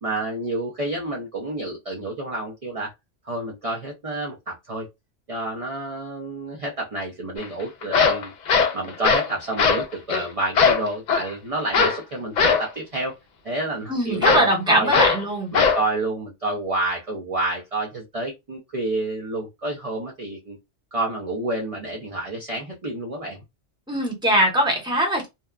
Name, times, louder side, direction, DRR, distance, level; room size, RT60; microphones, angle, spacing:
voice 1, 0.0-2.9 3.2-4.9 5.3-8.3 8.7-13.1 13.4-14.9 15.5-20.6 20.9-23.4, right 2 dB, 40° right, 0.5 m, -29 dB
sound 1, 7.4-7.5 7.8-9.3 9.6-9.8 10.1-10.2 10.6-11.3 11.7-12.0 12.4-12.7 14.2-14.5 14.9-15.2 15.5-15.8, left 5 dB, 60° left, 0.4 m, -19 dB
voice 2, 13.9-15.5 23.9-25.3, right 1 dB, 5° right, 0.8 m, -21 dB
2.7 x 2.2 x 2.3 m
omnidirectional pair, 1.2 m